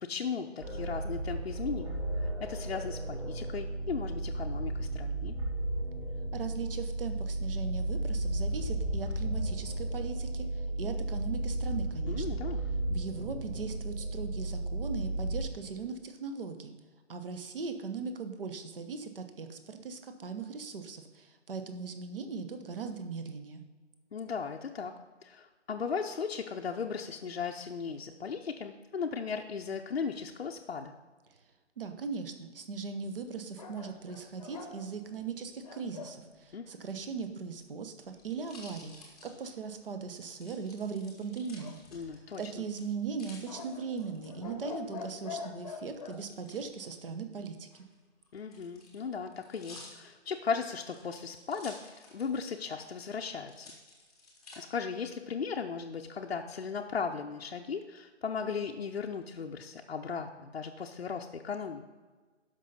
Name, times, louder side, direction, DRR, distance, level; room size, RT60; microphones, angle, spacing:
voice 1, 0.0-5.4 12.1-12.6 24.1-24.9 25.2-30.9 36.5-36.7 41.9-42.6 48.3-53.7 54.6-61.8, left 5 dB, 55° left, 2 dB, 0.7 m, -37 dB
sound 1, 0.6-15.4, right 2 dB, 25° right, 2.5 m, -34 dB
voice 2, 6.3-12.4 12.9-16.7 17.1-23.6 31.8-38.9 39.2-41.8 42.4-47.9, right 5 dB, 50° right, 7 dB, 1.0 m, -39 dB
sound 2, 33.6-36.2 41.6-42.4 43.4-46.2, left 5 dB, 30° left, 0.9 m, -45 dB
sound 3, 37.4-39.9 40.4-42.4 42.7-44.3 46.1-46.6 47.6-52.5 52.8-52.9 53.5-54.6 55.2-55.7, left 2 dB, ahead, 1.0 m, -53 dB
12.5 x 5.5 x 4.1 m, 1.3 s
figure-of-eight pair, 160°, 36 cm